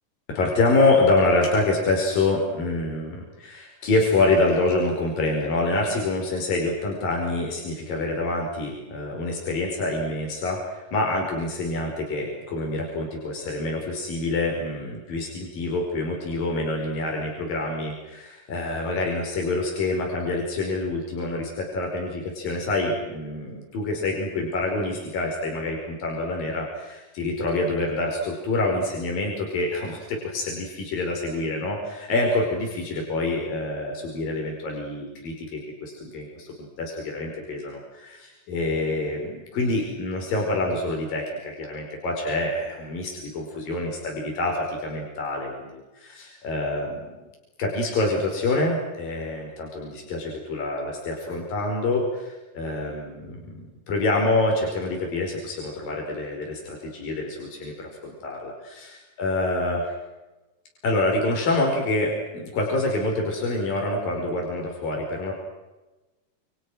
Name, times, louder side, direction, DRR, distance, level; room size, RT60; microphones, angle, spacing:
voice 1, 0.3-47.0 47.6-60.0 60.8-65.3, left 2 dB, 85° left, 0 dB, 6.8 m, -26 dB
29.5 x 28.5 x 6.4 m, 1.1 s
omnidirectional pair, 3.9 m